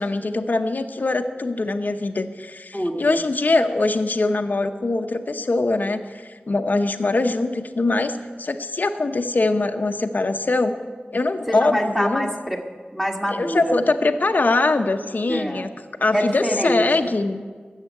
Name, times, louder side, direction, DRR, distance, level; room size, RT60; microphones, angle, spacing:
voice 1, 0.0-8.1 8.4-10.8 11.1-12.3 13.3-15.7 16.0-17.4, left 2 dB, 55° left, 6 dB, 0.7 m, -22 dB
voice 2, 2.7-3.2 11.5-12.6 12.9-13.8 15.3-15.6 16.1-17.1, equal, 5° right, 1 dB, 1.6 m, -25 dB
13.5 x 7.5 x 9.2 m, 1.5 s
wide cardioid pair, 75°, 4 cm